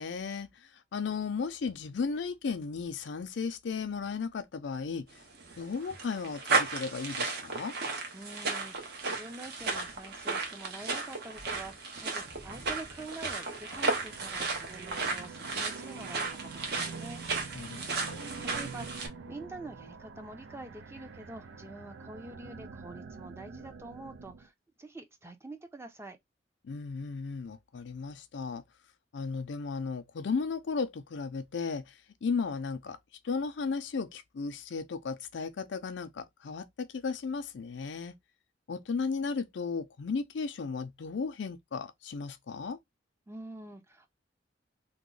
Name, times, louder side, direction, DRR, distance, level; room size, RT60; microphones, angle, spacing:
voice 1, 0.0-5.1 5.6-7.8 17.5-18.3 26.6-28.6 29.1-33.0 33.2-38.1 38.7-42.8, left 5 dB, 70° left, 0.4 m, -35 dB
sound 1, 5.2-19.1, right 3 dB, 60° right, 0.9 m, -34 dB
voice 2, 8.1-17.2 18.4-24.5 24.8-26.2 43.3-44.1, right 2 dB, 15° right, 0.5 m, -46 dB
sound 2, 13.7-24.5, right 4 dB, 85° right, 0.5 m, -46 dB
2.9 x 2.1 x 3.7 m
head